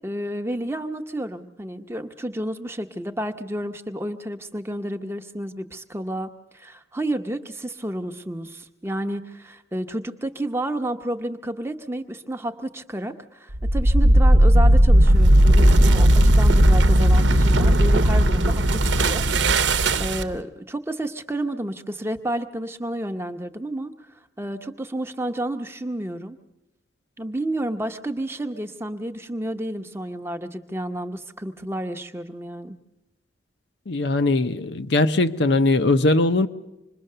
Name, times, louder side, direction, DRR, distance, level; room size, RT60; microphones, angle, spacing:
voice 1, 0.0-23.9 24.4-26.4 27.2-32.8, right 1 dB, 15° right, 0.8 m, -31 dB
sound 1, 13.5-20.4, right 1 dB, 80° right, 0.9 m, -16 dB
voice 2, 33.9-36.5, left 2 dB, 70° left, 0.7 m, -20 dB
26.0 x 21.5 x 6.7 m
head